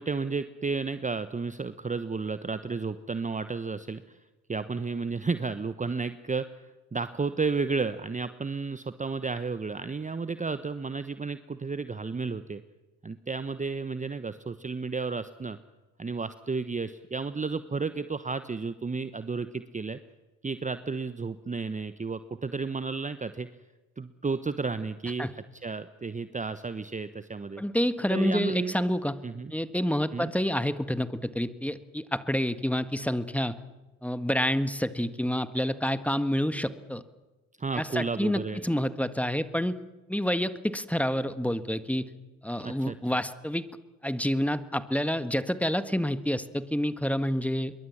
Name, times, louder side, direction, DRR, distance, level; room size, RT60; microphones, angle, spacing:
voice 1, 0.0-4.2 4.5-6.5 6.9-12.6 13.0-15.6 16.0-20.0 20.4-23.5 24.0-27.6 28.1-28.7 29.2-29.5 30.1-30.3 37.6-38.6 42.6-42.9, right 4 dB, 20° right, 12 dB, 1.1 m, -32 dB
voice 2, 27.6-29.1 29.5-33.5 34.0-37.0 37.7-39.8 40.1-42.1 42.4-43.7 44.0-47.7, equal, 5° left, 12 dB, 1.7 m, -28 dB
26.5 x 22.5 x 7.4 m, 1.1 s
hypercardioid pair, 55°, 42 cm